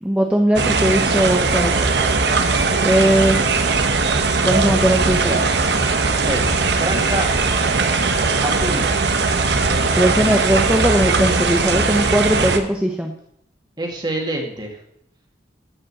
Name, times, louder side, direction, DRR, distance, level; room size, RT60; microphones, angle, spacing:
voice 1, 0.0-2.1 2.8-3.4 4.5-5.4 10.0-13.1, right 1 dB, 5° right, 2 dB, 0.8 m, -19 dB
sound 1, 0.6-12.6, right 4 dB, 75° right, 1.1 m, -19 dB
voice 2, 6.1-6.5 6.8-7.3 8.4-8.9 13.8-14.8, right 1 dB, 25° right, 1 dB, 2.2 m, -26 dB
14.5 x 5.4 x 7.5 m, 0.74 s
head